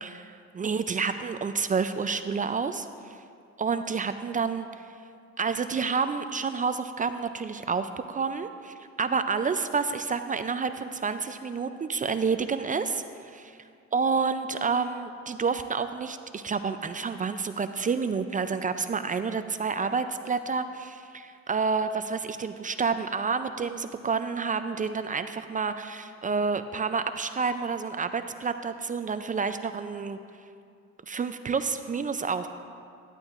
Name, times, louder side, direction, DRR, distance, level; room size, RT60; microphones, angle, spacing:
voice 1, 0.0-3.2 3.6-5.0 5.4-13.6 13.9-30.2 31.1-32.5, right 5 dB, 30° right, 10 dB, 0.3 m, -29 dB
12.0 x 11.5 x 2.5 m, 2.4 s
cardioid pair, 90°, 30 cm